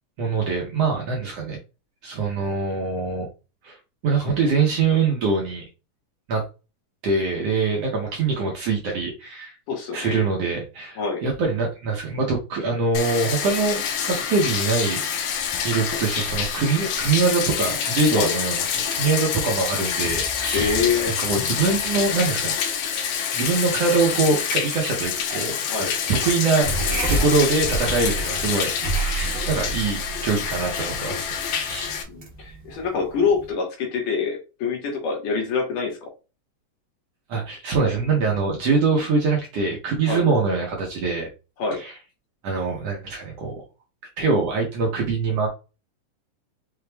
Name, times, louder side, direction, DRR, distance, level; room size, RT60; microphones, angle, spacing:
voice 1, 0.2-1.6 2.0-3.3 3.6-3.8 4.0-5.6 6.3-6.4 7.0-9.6 9.9-15.0 15.6-20.7 21.2-22.5 23.3-25.5 25.8-26.7 27.1-31.9 37.3-41.3 41.7-41.9 42.4-43.6 44.2-45.5, right 4 dB, 65° right, 1.8 m, -23 dB
voice 2, 9.7-10.3 11.0-11.2 18.2-18.3 20.5-21.2 25.7-25.9 32.1-36.1 40.1-40.2 41.6-41.8, left 5 dB, 75° left, 3.0 m, -25 dB
Bathtub (filling or washing), 12.9-32.0, left 7 dB, 90° left, 1.4 m, -27 dB
sound 1, 26.6-33.5, right 2 dB, 85° right, 0.7 m, -30 dB
6.0 x 2.4 x 3.3 m
omnidirectional pair, 3.8 m